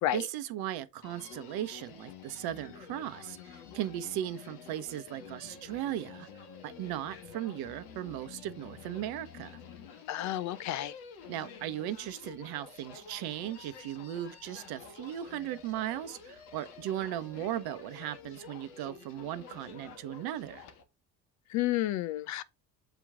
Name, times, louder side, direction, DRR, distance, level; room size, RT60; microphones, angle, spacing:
voice 1, 0.1-6.3 6.6-9.6 11.3-20.6, right 12 dB, 50° right, 0.8 m, -37 dB
Human voice, 1.0-20.8, left 6 dB, 55° left, 1.6 m, -50 dB
voice 2, 10.1-10.9 21.5-22.4, left 14 dB, 40° left, 0.5 m, -31 dB
7.9 x 4.5 x 3.6 m
figure-of-eight pair, 60°, 49 cm